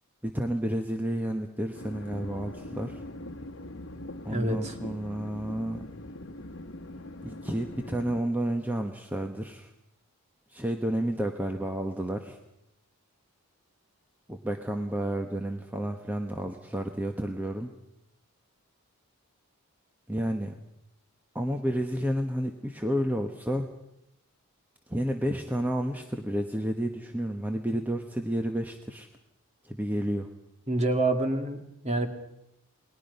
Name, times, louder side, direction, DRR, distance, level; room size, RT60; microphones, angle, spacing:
voice 1, 0.2-3.0 4.2-5.8 7.2-9.7 10.5-12.4 14.3-17.7 20.1-20.5 21.3-23.7 24.9-29.1 29.6-30.3, right 1 dB, 10° right, 4 dB, 1.1 m, -31 dB
sound 1, 1.7-8.2, left 1 dB, 60° left, 1.3 m, -42 dB
voice 2, 4.3-4.7 30.7-32.1, right 2 dB, 30° right, 5 dB, 2.4 m, -27 dB
29.0 x 20.0 x 5.5 m, 0.83 s
head